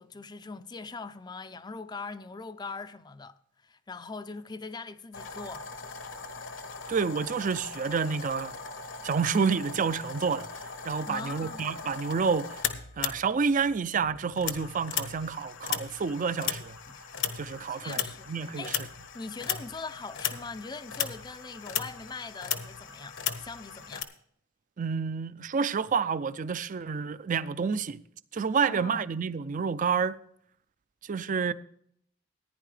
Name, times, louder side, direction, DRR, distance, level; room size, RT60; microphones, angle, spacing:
voice 1, 0.0-3.3 3.6-5.7 11.1-11.6 16.9-17.0 17.4-18.8 19.1-24.1 28.6-29.1, left 4 dB, 20° left, 0.5 m, -41 dB
sound 1, 5.1-13.8 14.0-24.0, left 8 dB, 70° left, 1.1 m, -37 dB
voice 2, 6.9-8.6 9.0-10.5 10.8-12.6 13.0-16.7 17.3-18.8 24.8-28.0 28.3-30.2 31.0-31.5, right 5 dB, 40° right, 0.4 m, -29 dB
15.0 x 10.0 x 3.3 m
head